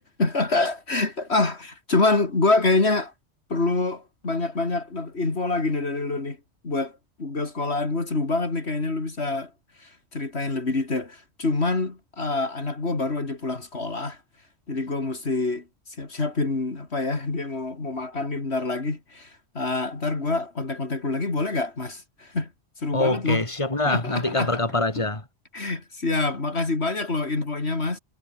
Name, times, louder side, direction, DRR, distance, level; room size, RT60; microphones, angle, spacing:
voice 1, 0.0-3.1 3.5-6.4 6.6-6.9 7.2-9.5 9.8-14.2 14.7-15.6 16.0-19.3 19.5-22.5 22.8-23.4 23.9-24.5 25.5-28.0, left 3 dB, 65° left, 3.2 m, -26 dB
voice 2, 22.9-25.2, left 2 dB, 25° left, 3.4 m, -24 dB
omnidirectional pair, 1.2 m